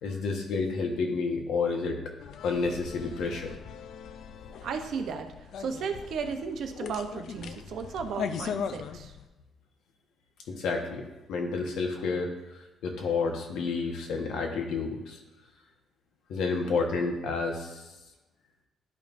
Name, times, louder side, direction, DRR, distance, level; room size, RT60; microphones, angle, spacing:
voice 1, 0.0-2.0 2.4-3.5 10.5-15.2 16.3-17.9, left 4 dB, 80° left, 2 dB, 1.2 m, -30 dB
sound 1, 2.2-9.3, left 7 dB, 60° left, 0.4 m, -39 dB
voice 2, 4.6-9.2, right 5 dB, 60° right, 6 dB, 0.7 m, -35 dB
11.0 x 5.3 x 2.6 m, 1.1 s
cardioid pair, 165°, 0 cm